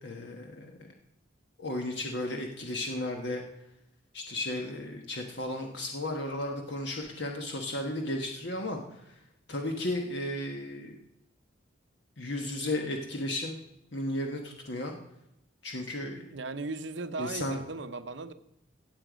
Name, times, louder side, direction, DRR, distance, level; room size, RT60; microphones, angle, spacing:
voice 1, 0.0-0.9 1.6-3.4 4.1-9.2 9.5-10.9 12.2-13.6 13.9-15.0 15.6-16.3 17.2-17.6, left 1 dB, 65° left, 2 dB, 1.3 m, -34 dB
voice 2, 16.3-18.3, right 3 dB, 70° right, 11 dB, 0.8 m, -37 dB
16.5 x 7.8 x 5.1 m, 0.82 s
head